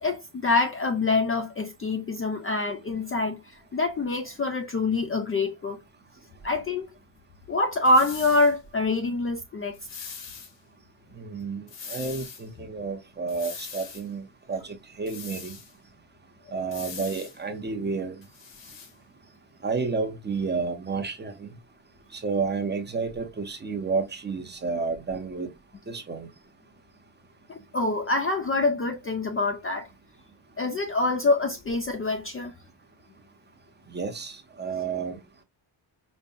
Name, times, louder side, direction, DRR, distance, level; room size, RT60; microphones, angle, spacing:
voice 1, 0.0-5.8 6.4-6.9 7.5-9.8 27.5-29.9 30.6-32.5, left 2 dB, 30° left, 0.4 m, -25 dB
Broom sweep, 7.8-8.5 9.7-10.5 11.7-12.4 13.3-14.0 15.1-15.7 16.7-17.4 18.2-18.9, left 6 dB, 65° left, 1.4 m, -41 dB
voice 2, 11.2-15.6 16.5-18.2 19.6-21.5 22.1-25.5 25.9-26.3 33.9-35.2, right 4 dB, 25° right, 0.8 m, -31 dB
5.2 x 2.1 x 2.6 m
wide cardioid pair, 155°, 46 cm